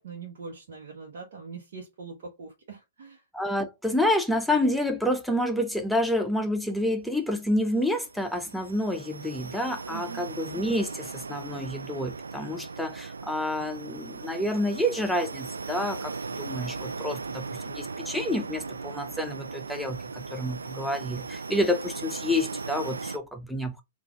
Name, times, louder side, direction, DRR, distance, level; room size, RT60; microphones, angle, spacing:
voice 1, 0.0-3.2 9.9-10.3, right 5 dB, 65° right, 1.2 m, -42 dB
voice 2, 3.3-23.8, left 1 dB, ahead, 0.6 m, -28 dB
sound 1, 7.5-23.2, right 4 dB, 85° right, 0.3 m, -38 dB
3.7 x 2.5 x 4.5 m
hypercardioid pair, 115°, 0 cm